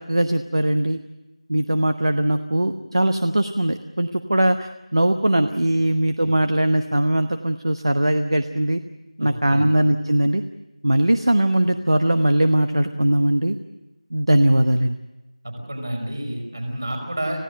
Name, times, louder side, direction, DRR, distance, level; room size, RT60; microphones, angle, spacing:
voice 1, 0.1-1.0 1.5-8.8 9.2-10.4 10.8-13.6 14.1-15.0, right 1 dB, 50° right, 8 dB, 1.1 m, -20 dB
voice 2, 9.2-9.7 15.4-17.4, right 1 dB, 35° right, 4 dB, 5.1 m, -30 dB
26.0 x 17.0 x 7.8 m, 1.0 s
figure-of-eight pair, 180°, 3 cm